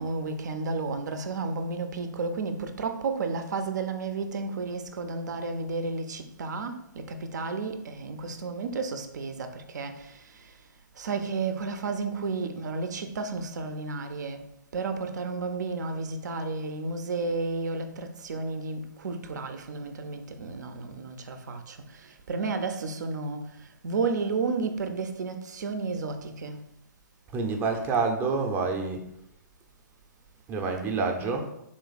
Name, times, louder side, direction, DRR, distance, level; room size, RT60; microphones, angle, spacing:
voice 1, 0.0-10.6 11.0-26.6, right 4 dB, 65° right, 0.6 m, -32 dB
voice 2, 27.3-29.0 30.5-31.5, right 4 dB, 20° right, 0.6 m, -27 dB
3.8 x 3.0 x 4.0 m
figure-of-eight pair, 125°, 10 cm